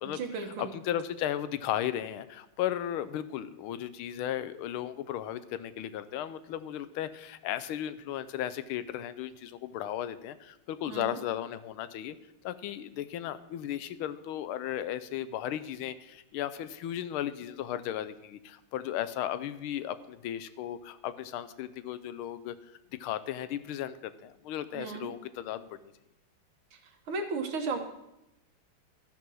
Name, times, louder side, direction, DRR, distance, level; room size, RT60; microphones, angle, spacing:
voice 1, 0.0-0.7 10.9-11.2 24.7-25.1 27.1-27.8, right 4 dB, 80° right, 4 dB, 2.1 m, -34 dB
voice 2, 0.6-12.2 12.4-22.5 23.0-25.8, left 11 dB, 85° left, 13 dB, 1.5 m, -35 dB
13.0 x 5.4 x 6.2 m, 0.89 s
omnidirectional pair, 2.3 m